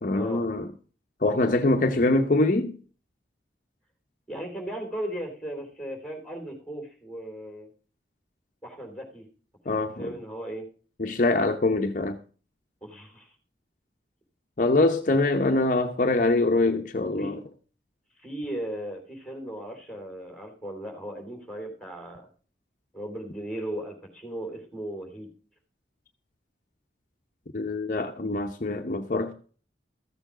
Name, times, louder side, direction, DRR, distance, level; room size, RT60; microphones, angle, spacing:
voice 1, 0.0-0.7 1.2-2.7 9.7-10.1 11.0-12.2 14.6-17.4 27.5-29.3, left 2 dB, 45° left, 0.8 m, -24 dB
voice 2, 4.3-7.7 8.6-9.3 9.6-10.7 12.8-13.3 17.2-17.4 18.2-22.3 22.9-25.3, right 1 dB, 5° left, 3.0 m, -37 dB
14.5 x 7.0 x 4.9 m
head